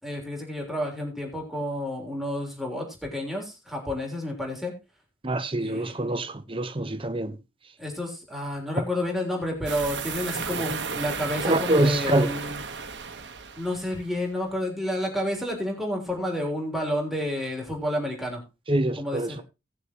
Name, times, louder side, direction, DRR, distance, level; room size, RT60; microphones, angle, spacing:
voice 1, 0.0-4.7 5.6-6.0 7.8-12.6 13.6-18.4 19.0-19.4, left 1 dB, ahead, 3.4 m, -30 dB
voice 2, 5.2-7.4 11.4-12.3 18.7-19.3, right 1 dB, 30° right, 1.0 m, -25 dB
sound 1, 9.7-14.1, right 5 dB, 85° right, 1.3 m, -33 dB
18.5 x 6.6 x 3.0 m
head